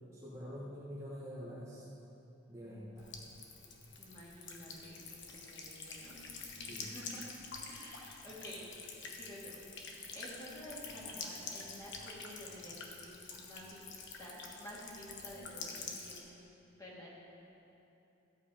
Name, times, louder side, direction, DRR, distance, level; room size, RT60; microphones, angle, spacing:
voice 1, 0.1-1.8 2.5-3.2 6.6-6.9, equal, 15° right, -8 dB, 1.3 m, -46 dB
Buzz / Water tap faucet / Trickle dribble, 3.0-16.2, left 4 dB, 55° left, 1.2 m, -47 dB
voice 2, 4.0-6.2 6.8-7.3 7.7-8.7 9.1-13.9 14.2-17.1, equal, 20° left, -6 dB, 2.4 m, -51 dB
14.0 x 8.1 x 5.1 m, 3.0 s
head